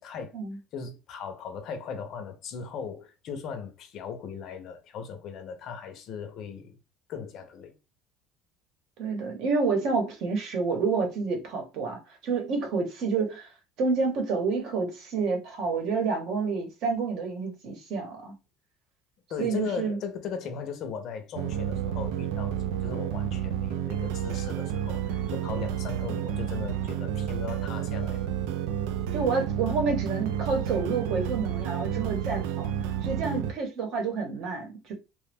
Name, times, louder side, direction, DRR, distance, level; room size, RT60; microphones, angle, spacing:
voice 1, 0.0-0.3 0.7-6.8 7.1-7.7 19.3-28.3, left 6 dB, 40° left, 0.6 m, -38 dB
voice 2, 9.0-13.5 13.8-18.3 19.4-20.0 29.1-32.7 33.0-34.9, right 4 dB, 50° right, 0.9 m, -29 dB
sound 1, 21.3-33.5, right 10 dB, 85° right, 0.3 m, -30 dB
3.0 x 2.2 x 3.3 m
cardioid pair, 175°, 0 cm